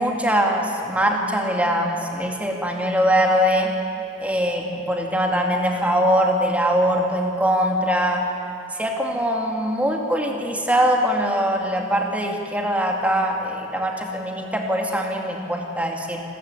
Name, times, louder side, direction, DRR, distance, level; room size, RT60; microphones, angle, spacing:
voice 1, 0.0-3.7 4.2-8.2 8.7-16.2, equal, 10° right, 1 dB, 2.2 m, -22 dB
27.0 x 14.0 x 9.1 m, 2.8 s
head